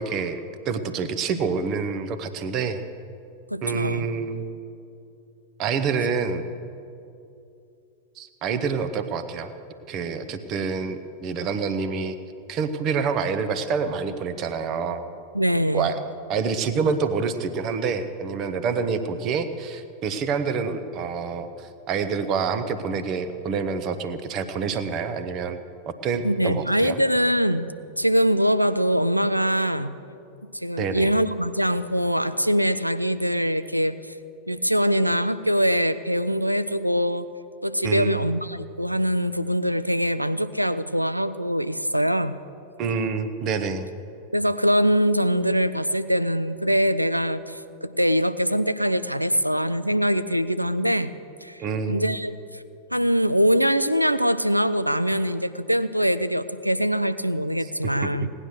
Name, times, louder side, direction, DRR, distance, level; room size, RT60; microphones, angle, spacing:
voice 1, 0.0-2.8 3.6-4.6 5.6-6.4 8.2-9.5 9.9-12.2 12.5-15.0 15.7-16.0 16.3-25.6 25.9-27.0 30.8-31.1 37.8-38.3 42.8-43.9 51.6-52.1 57.6-57.9, right 5 dB, 35° right, 9 dB, 0.9 m, -27 dB
voice 2, 3.5-4.1 15.3-15.9 26.2-30.0 30.5-34.1 34.5-37.3 37.6-42.4 44.3-51.1 51.4-52.6 52.9-58.3, equal, 90° right, 13 dB, 0.5 m, -23 dB
18.0 x 9.8 x 6.5 m, 2.6 s
figure-of-eight pair, 90°, 0 cm